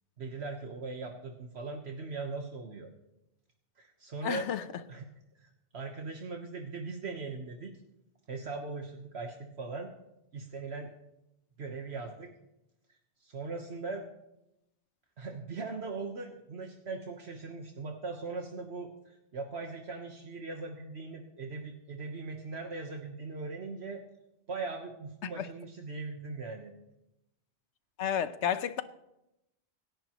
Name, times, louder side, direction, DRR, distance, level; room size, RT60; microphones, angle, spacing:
voice 1, 0.2-2.9 3.8-4.5 4.9-5.1 5.4-7.7 8.3-9.9 10.3-10.9 11.6-12.3 13.2-14.0 15.2-24.0 24.5-26.7, right 3 dB, 65° right, 1.4 m, -40 dB
voice 2, 4.2-4.7 25.2-25.5 28.0-28.8, left 8 dB, 85° left, 1.1 m, -31 dB
25.5 x 10.5 x 3.0 m
omnidirectional pair, 1.2 m